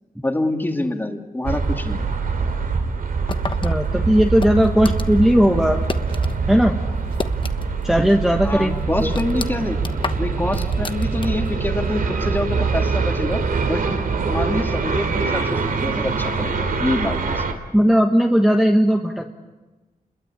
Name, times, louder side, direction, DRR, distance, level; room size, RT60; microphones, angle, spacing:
voice 1, 0.2-2.0 8.4-9.8 10.2-13.8 14.3-17.4, left 1 dB, 15° left, 3 dB, 2.4 m, -26 dB
sound 1, 1.4-17.5, right 4 dB, 75° right, 3.0 m, -24 dB
sound 2, 3.3-6.4 6.7-7.9 8.2-8.3 8.8-11.6, left 4 dB, 35° left, 1.1 m, -32 dB
voice 2, 3.6-5.8 6.5-6.8 7.8-9.1 17.7-19.3, equal, 5° right, 2 dB, 1.4 m, -17 dB
sound 3, 4.1-11.2 11.5-12.0, right 2 dB, 40° right, 3.7 m, -44 dB
30.0 x 21.5 x 8.5 m, 1.2 s
wide cardioid pair, 160°, 15 cm